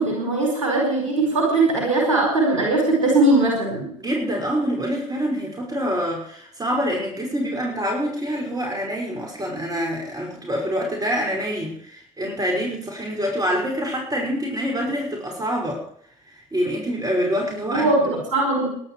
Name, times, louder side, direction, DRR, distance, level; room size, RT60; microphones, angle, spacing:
voice 1, 0.0-3.9 17.7-18.7, right 2 dB, 80° right, 0 dB, 4.9 m, -20 dB
voice 2, 4.0-15.8 16.5-17.9, equal, 20° right, 0 dB, 5.7 m, -26 dB
20.0 x 11.5 x 4.7 m, 0.66 s
figure-of-eight pair, 55°, 17 cm